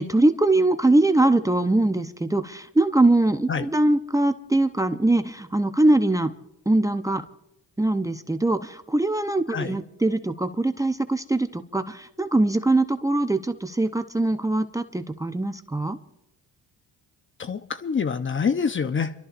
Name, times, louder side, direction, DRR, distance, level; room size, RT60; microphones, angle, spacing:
voice 1, 0.0-6.3 6.7-7.2 7.8-16.0, right 2 dB, 10° right, 8 dB, 0.8 m, -22 dB
voice 2, 17.4-19.1, left 6 dB, 35° left, 10 dB, 0.9 m, -26 dB
30.0 x 13.0 x 2.6 m, 0.84 s
supercardioid pair, 75°, 36 cm